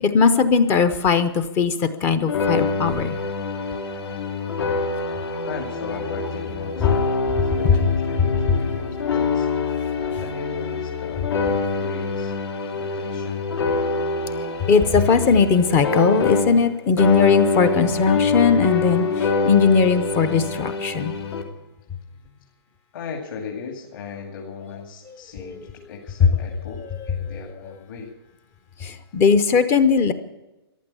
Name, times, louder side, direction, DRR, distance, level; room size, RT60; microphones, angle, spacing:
voice 1, 0.0-3.2 14.7-21.1 25.4-25.6 28.8-30.1, left 5 dB, 15° left, 12 dB, 0.7 m, -19 dB
sound 1, 2.3-16.7 17.0-21.4, left 4 dB, 75° left, 3.4 m, -25 dB
voice 2, 5.4-9.5 10.0-12.3 12.7-13.5 21.5-22.5 22.9-28.1, left 5 dB, 50° left, 0 dB, 2.6 m, -37 dB
14.5 x 11.5 x 8.4 m, 1.0 s
hypercardioid pair, 165°, 14 cm